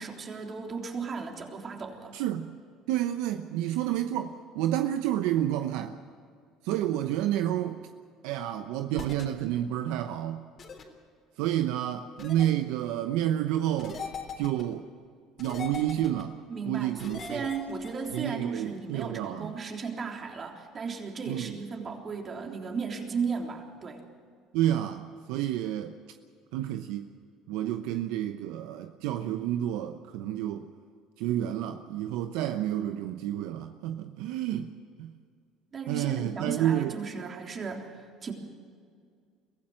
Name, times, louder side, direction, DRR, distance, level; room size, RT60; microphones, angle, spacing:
voice 1, 0.0-2.1 16.5-17.0 17.3-24.0 35.7-38.3, right 5 dB, 40° right, 2 dB, 3.6 m, -35 dB
voice 2, 2.1-2.5 2.9-5.9 6.6-7.8 8.2-10.4 11.4-14.0 14.4-14.8 15.4-16.4 16.7-17.5 18.1-19.5 21.3-21.6 24.5-25.9 26.5-27.1 27.5-30.6 31.2-34.7 35.0-35.1 35.9-36.9, right 12 dB, 80° right, 8 dB, 0.8 m, -29 dB
sound 1, 9.0-9.2 10.6-10.8 12.2-12.5 13.8-14.6 15.4-16.2 17.0-18.2, left 5 dB, 45° left, 3.6 m, -40 dB
23.0 x 16.0 x 7.7 m, 2.2 s
supercardioid pair, 85°, 0 cm